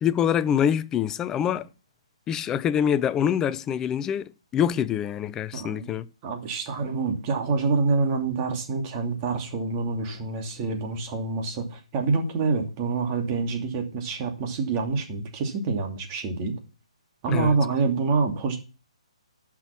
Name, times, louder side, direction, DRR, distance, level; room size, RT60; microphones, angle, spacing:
voice 1, 0.0-1.7 2.3-6.1 17.3-17.6, left 9 dB, 15° left, 0.5 m, -25 dB
voice 2, 5.5-5.9 6.2-16.5 17.2-18.6, right 4 dB, 30° right, 2.7 m, -26 dB
11.0 x 6.1 x 5.9 m
hypercardioid pair, 140°, 4 cm